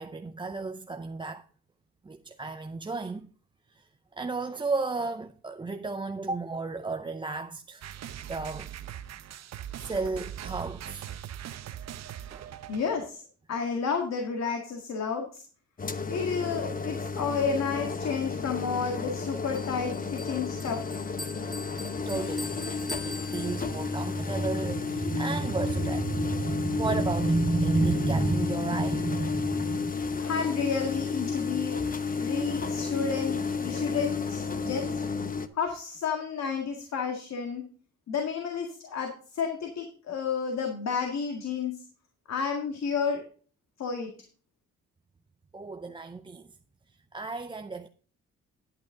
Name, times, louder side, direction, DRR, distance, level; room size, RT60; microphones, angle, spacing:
voice 1, 0.0-1.5 2.0-3.3 3.7-7.8 8.3-8.7 9.8-11.1 12.3-12.5 22.0-22.6 23.0-29.9 45.5-46.6 47.1-47.9, right 3 dB, 15° right, 0.6 m, -32 dB
sound 1, 7.8-13.1, right 10 dB, 60° right, 0.8 m, -41 dB
voice 2, 12.7-13.2 13.5-15.4 16.1-20.9 30.2-31.8 32.1-35.0 35.5-37.6 38.1-41.7 42.3-43.2 43.8-44.1, left 6 dB, 60° left, 2.0 m, -31 dB
sound 2, 15.8-35.5, left 4 dB, 30° left, 1.0 m, -32 dB
Bell, 19.5-24.0, left 1 dB, ahead, 1.5 m, -43 dB
10.5 x 8.9 x 3.7 m
cardioid pair, 90°, 30 cm